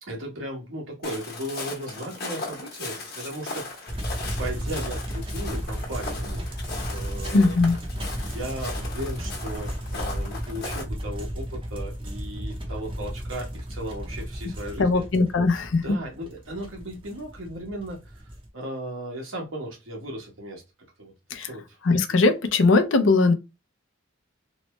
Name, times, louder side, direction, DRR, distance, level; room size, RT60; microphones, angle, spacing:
voice 1, 0.0-4.0 4.4-6.4 6.9-7.6 8.1-15.0 15.8-18.3 18.5-20.6 21.0-21.8 22.1-22.2, right 1 dB, 75° right, 1.3 m, -36 dB
Walk footsteps, 1.0-10.8, left 3 dB, 50° left, 1.0 m, -38 dB
sound 1, 3.9-18.5, equal, 25° right, 0.7 m, -34 dB
voice 2, 7.3-7.8 14.8-15.8 21.3-21.5 21.9-23.3, left 3 dB, 65° left, 0.5 m, -20 dB
3.1 x 2.1 x 3.1 m
head